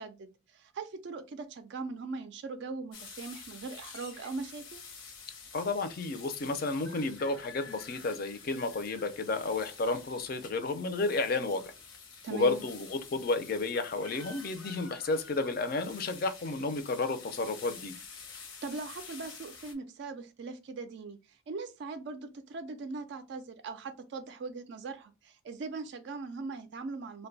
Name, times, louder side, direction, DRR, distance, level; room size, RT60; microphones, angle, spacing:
voice 1, 0.0-4.8 12.2-12.6 18.6-27.3, right 4 dB, 55° right, 0.3 m, -40 dB
sound 1, 2.9-19.7, left 5 dB, 80° left, 0.9 m, -49 dB
voice 2, 5.5-11.7 12.3-17.9, left 3 dB, 45° left, 0.4 m, -32 dB
2.6 x 2.2 x 3.8 m
head